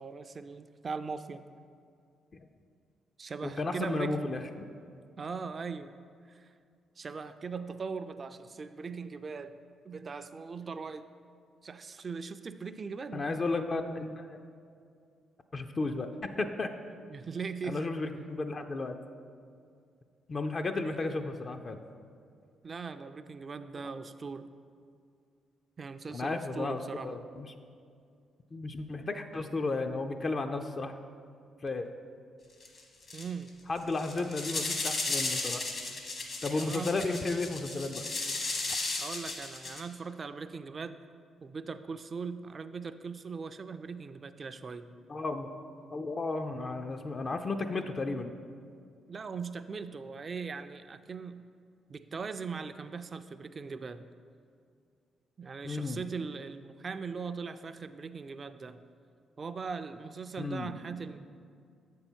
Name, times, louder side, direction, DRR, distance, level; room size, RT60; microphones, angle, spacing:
voice 1, 0.0-1.4 3.2-4.3 5.2-5.9 6.3-6.5 7.0-9.6 9.8-11.1 11.6-13.3 17.1-17.9 20.8-21.0 22.6-24.5 25.8-27.1 33.1-33.5 34.1-34.3 36.5-37.0 39.0-41.0 41.4-44.9 49.1-51.4 51.9-54.0 55.4-58.8 59.4-61.2, right 5 dB, 40° right, 10 dB, 0.3 m, -40 dB
voice 2, 3.4-4.7 13.1-14.4 15.5-16.7 17.7-19.0 20.3-21.8 26.1-27.5 28.5-31.0 31.6-31.9 33.7-35.6 36.4-38.1 45.1-45.5 45.9-48.3 55.6-56.0 60.4-60.7, left 3 dB, 40° left, 6 dB, 0.4 m, -33 dB
sound 1, 32.6-32.8 33.1-33.5 33.9-39.8, left 3 dB, 55° left, 1.2 m, -35 dB
7.3 x 5.4 x 4.5 m, 2.3 s
cardioid pair, 70°, 0 cm